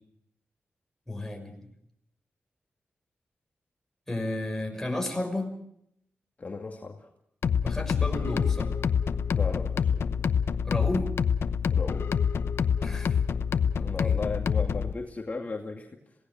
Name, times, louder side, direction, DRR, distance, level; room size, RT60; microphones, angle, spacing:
voice 1, 1.1-1.7 4.1-5.5 7.6-8.7 10.6-11.2 12.8-13.2 13.7-14.2, left 1 dB, 10° left, 3 dB, 6.1 m, -33 dB
voice 2, 6.4-7.1 9.3-10.3 11.7-12.2 13.8-16.1, left 3 dB, 40° left, 1 dB, 2.4 m, -36 dB
sound 1, 7.4-14.9, left 7 dB, 90° left, 0.9 m, -26 dB
27.5 x 18.0 x 6.3 m, 0.75 s
wide cardioid pair, 85°, 4 cm